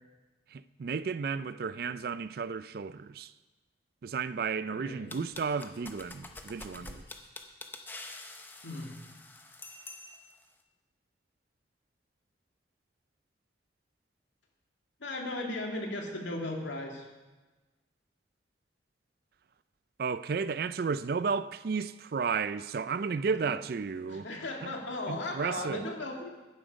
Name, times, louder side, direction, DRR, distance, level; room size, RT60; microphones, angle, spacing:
voice 1, 0.5-3.3 4.0-7.0 20.0-24.3 24.6-24.7 25.1-25.8, right 5 dB, 50° right, 0.4 m, -33 dB
voice 2, 4.7-5.2 6.8-6.9 8.6-9.0 15.0-17.1 23.4-23.5 24.1-26.3, left 2 dB, 80° left, 2.1 m, -37 dB
sound 1, 5.1-10.4, left 2 dB, 10° left, 0.7 m, -46 dB
11.5 x 10.0 x 5.2 m
head